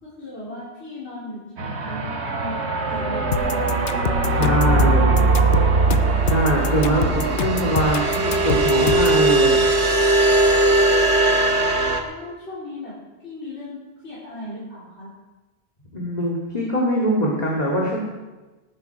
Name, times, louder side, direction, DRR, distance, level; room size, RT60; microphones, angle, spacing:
voice 1, 0.0-3.8 4.1-5.6 6.8-7.3 12.0-12.9 13.2-15.1, left 1 dB, 75° left, -8 dB, 4.1 m, -36 dB
sound 1, 1.6-12.0, right 2 dB, 75° right, 1.6 m, -19 dB
sound 2, 3.3-9.2, left 7 dB, 55° left, 0.8 m, -26 dB
voice 2, 4.3-5.1 6.2-9.5 15.9-18.0, right 1 dB, 35° left, -3 dB, 2.4 m, -22 dB
18.0 x 10.5 x 4.7 m, 1.2 s
omnidirectional pair, 1.1 m